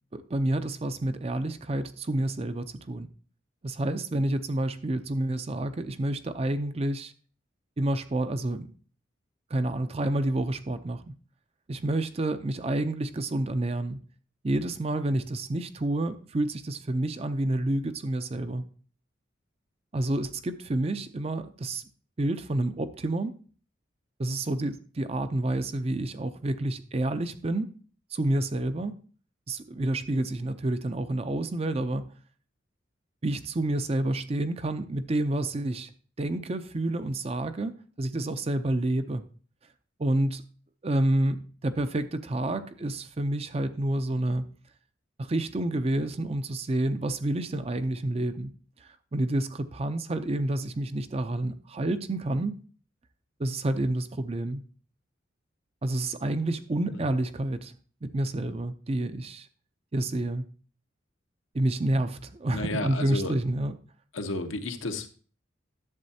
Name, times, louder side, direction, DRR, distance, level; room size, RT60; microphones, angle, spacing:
voice 1, 0.1-3.1 3.6-7.1 7.8-8.7 9.5-11.1 11.7-14.0 14.4-18.6 19.9-21.8 22.2-23.3 24.2-27.7 28.1-29.0 29.5-32.1 33.2-35.9 36.2-39.2 40.0-40.4 40.8-44.5 45.2-48.5 48.8-52.6 53.4-54.6 55.8-57.7 58.0-59.5 59.9-60.4 61.5-63.8, right 1 dB, 30° right, 11 dB, 0.5 m, -29 dB
voice 2, 62.5-63.3 64.1-65.1, left 2 dB, 85° left, 6 dB, 0.9 m, -32 dB
11.0 x 7.3 x 2.7 m, 0.41 s
head